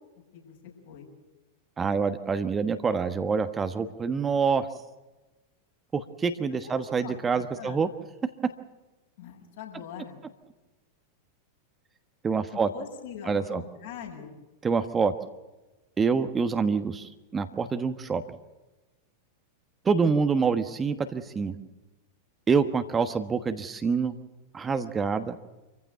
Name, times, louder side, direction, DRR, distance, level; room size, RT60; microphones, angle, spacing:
voice 1, 0.3-1.1 6.5-7.9 9.2-10.2 12.5-14.3, left 8 dB, 55° left, 1 dB, 6.9 m, -42 dB
voice 2, 1.8-4.7 5.9-7.9 12.2-12.7 13.3-13.6 14.6-15.1 16.0-18.2 19.8-21.6 22.5-24.1 24.5-25.4, right 5 dB, 20° right, 9 dB, 1.3 m, -26 dB
27.0 x 15.5 x 8.1 m, 1.1 s
figure-of-eight pair, 90°, 0 cm